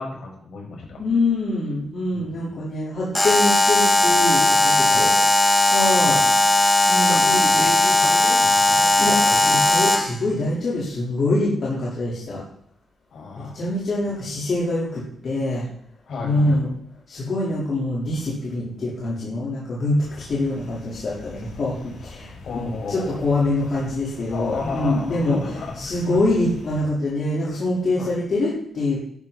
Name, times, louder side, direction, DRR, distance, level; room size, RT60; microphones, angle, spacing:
voice 1, 0.0-1.0 2.1-2.6 4.8-5.2 5.9-6.3 7.0-9.0 9.2-9.6 13.1-13.5 16.1-16.6 22.4-23.2 24.3-26.2 28.0-28.1, left 3 dB, 65° left, -1 dB, 5.8 m, -33 dB
voice 2, 0.9-5.1 5.7-6.2 6.9-7.7 9.0-12.4 13.4-15.6 16.2-16.7 17.1-25.4 25.8-29.0, left 2 dB, 50° left, -7 dB, 4.1 m, -24 dB
Alarm, 3.1-10.2, left 2 dB, 10° left, 1.2 m, -17 dB
sound 1, 20.0-26.8, left 2 dB, 90° left, 4.8 m, -43 dB
12.5 x 11.5 x 4.3 m, 0.68 s
cardioid pair, 135°, 0 cm